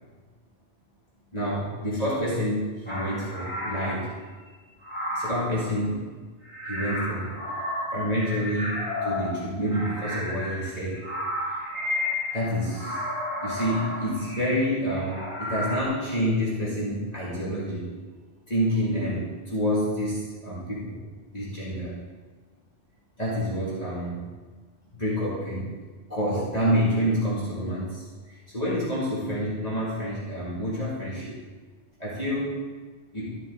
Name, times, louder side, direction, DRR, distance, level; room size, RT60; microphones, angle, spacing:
voice 1, 1.3-4.1 5.1-6.0 6.7-7.3 7.9-11.0 12.3-13.1 13.4-17.9 18.5-21.0 21.3-22.0 23.2-24.3 24.9-25.7 26.1-31.4 32.0-32.6 33.1-33.4, equal, 35° left, -9 dB, 2.7 m, -28 dB
sound 1, 2.9-4.1 4.8-5.8 6.4-15.8, left 1 dB, 10° left, 3.0 m, -32 dB
13.5 x 6.3 x 3.9 m, 1.4 s
omnidirectional pair, 1.1 m